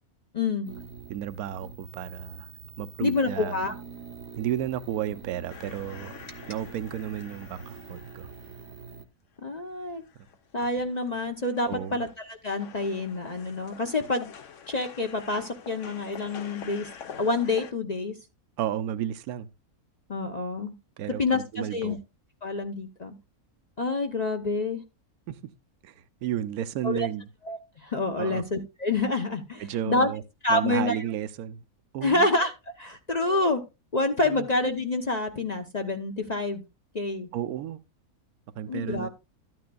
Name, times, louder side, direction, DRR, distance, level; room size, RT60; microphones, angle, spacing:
voice 1, 0.3-0.7 3.0-3.7 9.4-10.0 10.5-14.3 14.7-16.9 17.2-18.1 20.1-20.7 21.2-22.0 22.4-23.1 23.8-24.8 26.8-27.1 27.5-30.1 30.4-31.0 32.0-32.5 32.8-33.6 33.9-36.6 36.9-37.3 38.7-39.1, left 2 dB, 35° left, 0.8 m, -27 dB
sound 1, 0.6-9.0, right 6 dB, 55° right, 1.1 m, -46 dB
voice 2, 1.1-2.5 2.8-3.6 4.4-6.2 6.5-8.3 10.2-10.3 11.7-12.0 18.6-19.5 21.0-22.0 25.3-25.5 25.8-27.3 28.2-28.4 29.6-30.2 30.5-31.6 31.9-32.3 34.2-34.5 37.3-37.8 38.6-39.1, right 10 dB, 80° right, 1.1 m, -32 dB
sound 2, 5.5-8.9 9.4-9.5 9.8-12.3 12.6-17.7, left 7 dB, 60° left, 1.2 m, -46 dB
13.0 x 9.4 x 2.3 m
omnidirectional pair, 1.5 m